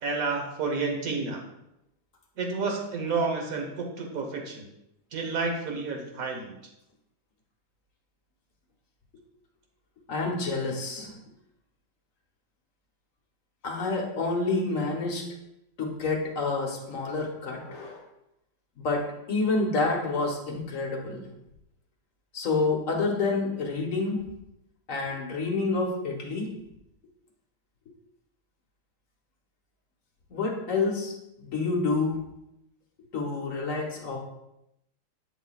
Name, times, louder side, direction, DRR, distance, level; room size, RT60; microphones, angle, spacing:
voice 1, 0.0-1.4 2.4-4.6 5.1-6.5, right 4 dB, 50° right, 3 dB, 1.3 m, -30 dB
voice 2, 10.1-11.2 13.6-15.2 15.8-18.0 18.8-21.3 22.3-24.2 24.9-26.5 30.3-31.1 31.4-32.2 33.1-34.2, left 3 dB, 45° left, 0 dB, 1.3 m, -28 dB
9.3 x 6.8 x 2.4 m, 0.84 s
omnidirectional pair, 2.4 m